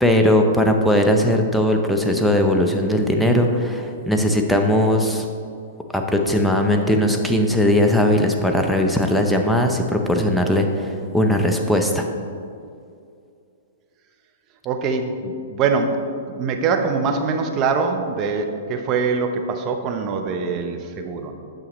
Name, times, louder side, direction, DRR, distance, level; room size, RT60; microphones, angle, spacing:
voice 1, 0.0-5.3 5.9-12.0, left 1 dB, ahead, 3 dB, 0.7 m, -19 dB
voice 2, 14.6-21.3, right 4 dB, 35° right, 5 dB, 0.8 m, -23 dB
8.7 x 6.2 x 3.1 m, 2.4 s
hypercardioid pair, 125°, 0 cm